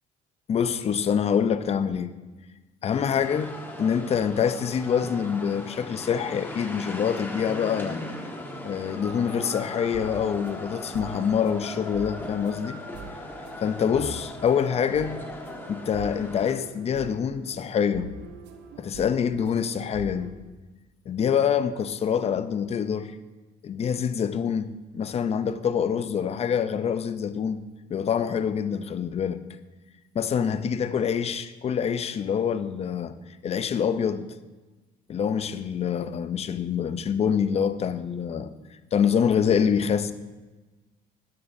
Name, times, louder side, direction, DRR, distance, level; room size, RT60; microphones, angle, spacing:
voice 1, 0.5-2.1 2.8-8.0 8.6-12.8 13.6-15.2 15.7-18.1 18.8-20.3 21.1-23.2 23.6-27.6 27.9-29.4 30.1-33.2 33.4-34.3 35.1-38.5 38.9-40.1, left 7 dB, 40° left, 0.6 m, -26 dB
sound 1, 2.9-16.5, left 1 dB, 10° left, 1.3 m, -38 dB
sound 2, 9.1-20.3, right 4 dB, 85° right, 1.0 m, -44 dB
12.5 x 10.0 x 2.7 m
cardioid pair, 110°, 17 cm